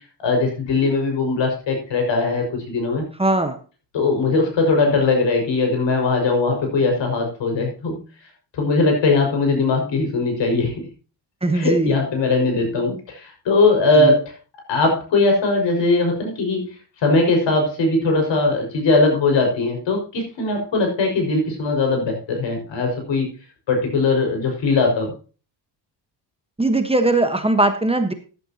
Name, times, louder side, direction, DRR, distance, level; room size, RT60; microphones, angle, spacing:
voice 1, 0.2-3.1 3.9-8.0 8.5-10.9 11.5-14.2 14.7-16.7 17.0-23.3 23.7-25.1, left 3 dB, 80° left, 3 dB, 5.8 m, -20 dB
voice 2, 3.2-3.6 11.4-12.0 14.0-14.1 26.6-28.1, right 2 dB, 15° right, 7 dB, 1.2 m, -19 dB
14.5 x 11.0 x 2.9 m, 0.35 s
cardioid pair, 130°, 44 cm